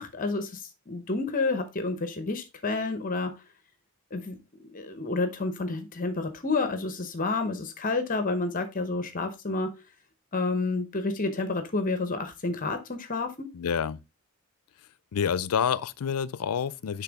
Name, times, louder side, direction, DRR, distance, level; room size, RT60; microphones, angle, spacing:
voice 1, 0.0-3.3 4.1-4.4 4.7-9.7 10.3-13.5, left 3 dB, 40° left, 0.8 m, -29 dB
voice 2, 13.5-14.0 15.1-17.0, left 7 dB, 90° left, 0.4 m, -28 dB
10.0 x 3.5 x 3.5 m
head